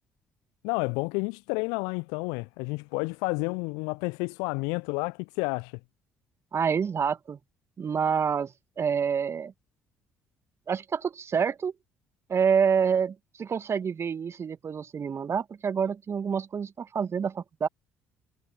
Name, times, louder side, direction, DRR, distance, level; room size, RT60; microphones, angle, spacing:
voice 1, 0.6-5.7, left 32 dB, 65° left, 0.7 m, -30 dB
voice 2, 6.5-7.4 7.8-9.5 10.7-11.7 12.3-17.7, right 6 dB, 40° right, 2.0 m, -27 dB
figure-of-eight pair, 50°, 7 cm